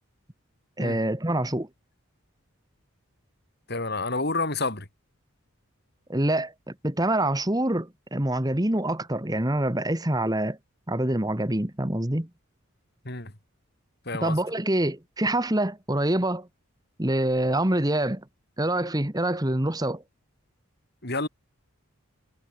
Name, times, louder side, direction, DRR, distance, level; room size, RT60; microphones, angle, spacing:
voice 1, 0.8-1.7 6.1-10.6 10.9-12.3 14.2-16.5 17.0-18.2 18.6-20.0, right 1 dB, 15° right, 1.5 m, -25 dB
voice 2, 3.7-4.9 13.0-13.3 14.1-14.4 21.0-21.3, left 3 dB, 45° left, 4.3 m, -29 dB
head